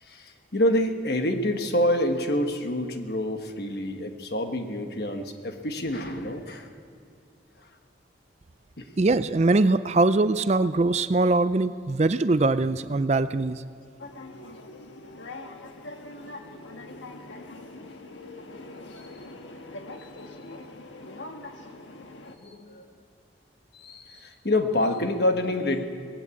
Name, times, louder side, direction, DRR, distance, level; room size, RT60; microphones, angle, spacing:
voice 1, 0.0-6.7 8.8-8.9 18.9-19.0 20.0-20.1 22.4-22.8 23.7-25.8, left 1 dB, 55° left, 6 dB, 1.4 m, -27 dB
voice 2, 9.0-13.6, right 2 dB, 35° right, 13 dB, 0.4 m, -22 dB
sound 1, 14.0-22.3, left 2 dB, 90° left, 1.5 m, -42 dB
18.5 x 16.5 x 8.5 m, 2.5 s
head